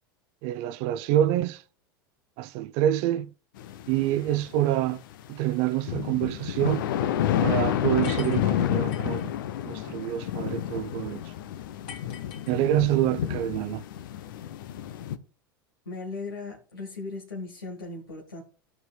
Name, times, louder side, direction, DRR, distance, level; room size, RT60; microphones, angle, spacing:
voice 1, 0.4-1.6 2.4-3.3 3.9-5.0 5.3-6.8 7.4-9.3 9.7-11.2 12.5-13.8, right 13 dB, 50° right, 0.6 m, -26 dB
sound 1, 3.6-5.3 5.6-15.2, left 11 dB, 65° left, 0.7 m, -30 dB
sound 2, 8.0-9.3 11.9-13.0, left 7 dB, 45° left, 2.2 m, -45 dB
voice 2, 15.8-18.4, left 3 dB, 85° left, 1.7 m, -37 dB
15.5 x 5.9 x 2.3 m
figure-of-eight pair, 85°, 12 cm